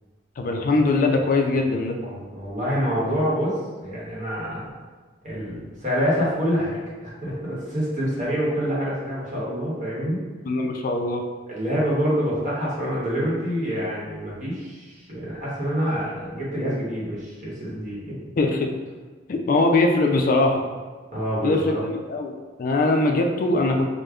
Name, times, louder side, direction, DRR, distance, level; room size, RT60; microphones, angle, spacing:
voice 1, 0.4-2.0 10.4-11.2 18.4-18.7 19.3-20.6 21.4-23.9, left 2 dB, 45° left, 3 dB, 0.3 m, -21 dB
voice 2, 2.0-4.7 5.2-10.2 11.5-18.1 21.1-21.8, equal, 40° right, -6 dB, 0.9 m, -26 dB
4.9 x 2.1 x 2.3 m, 1.4 s
head